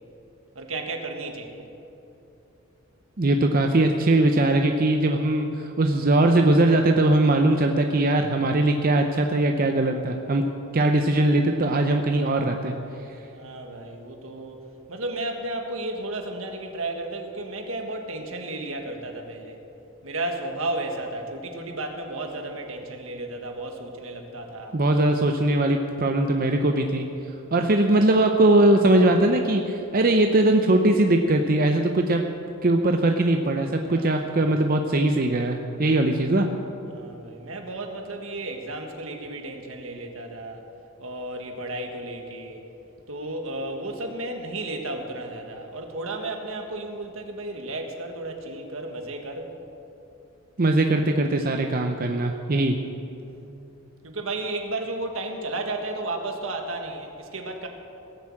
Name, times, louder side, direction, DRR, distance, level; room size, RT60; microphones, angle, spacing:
voice 1, 0.5-1.7 13.3-19.6 20.0-24.8 33.8-34.7 36.8-40.6 41.0-42.6 43.1-49.5 51.4-51.7 54.0-57.7, right 2 dB, 75° right, 4 dB, 1.6 m, -33 dB
voice 2, 3.2-10.4 10.7-12.7 24.7-27.1 27.5-32.2 32.6-36.5 50.6-52.8, right 2 dB, 45° right, 4 dB, 0.6 m, -20 dB
18.0 x 7.2 x 7.7 m, 2.9 s
head